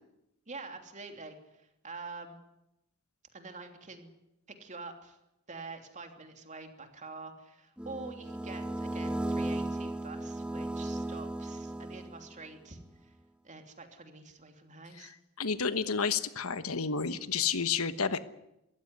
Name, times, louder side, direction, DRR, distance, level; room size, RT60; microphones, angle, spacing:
voice 1, 0.5-2.4 3.3-4.1 4.5-5.2 5.5-13.1 13.4-15.1, right 3 dB, 35° right, 5 dB, 3.0 m, -46 dB
sound 1, 7.8-12.4, right 1 dB, 5° right, 1.3 m, -35 dB
voice 2, 15.4-18.2, left 6 dB, 80° left, 12 dB, 1.3 m, -30 dB
23.5 x 15.5 x 9.9 m, 0.87 s
head